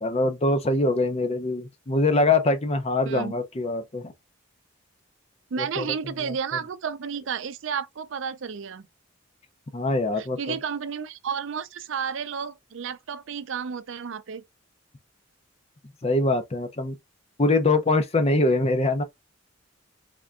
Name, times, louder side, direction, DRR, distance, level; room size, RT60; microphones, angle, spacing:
voice 1, 0.0-4.1 5.6-5.9 6.2-6.3 9.7-10.6 16.0-17.0 17.4-19.0, left 2 dB, 30° left, 0.5 m, -23 dB
voice 2, 5.5-8.9 10.2-14.4, right 6 dB, 65° right, 0.4 m, -32 dB
3.7 x 3.4 x 2.4 m
head